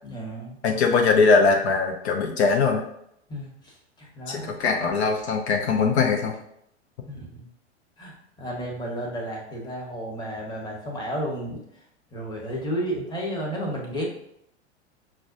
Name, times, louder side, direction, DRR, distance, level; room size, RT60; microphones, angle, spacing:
voice 1, 0.0-0.8 3.3-4.5 7.1-7.5 8.0-11.6 12.1-14.0, equal, 10° left, -2 dB, 1.0 m, -32 dB
voice 2, 0.6-2.8 4.3-6.3, left 4 dB, 70° left, 2 dB, 0.6 m, -21 dB
5.8 x 2.2 x 2.5 m, 0.74 s
hypercardioid pair, 95°, 35 cm